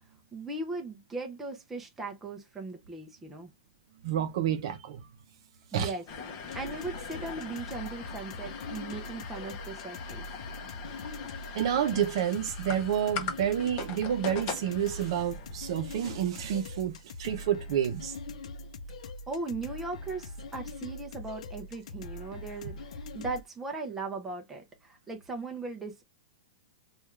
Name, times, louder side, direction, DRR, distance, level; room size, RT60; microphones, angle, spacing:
voice 1, 0.3-3.5 5.7-6.0 6.5-10.3 19.3-26.0, right 3 dB, 5° right, 0.5 m, -38 dB
voice 2, 4.0-5.1 5.7-5.9 11.5-18.1, right 9 dB, 50° right, 0.6 m, -29 dB
sound 1, 6.1-16.4, left 6 dB, 30° left, 0.7 m, -41 dB
sound 2, 6.5-23.4, left 2 dB, 75° left, 0.5 m, -43 dB
3.4 x 2.3 x 3.0 m
supercardioid pair, 170°, 4 cm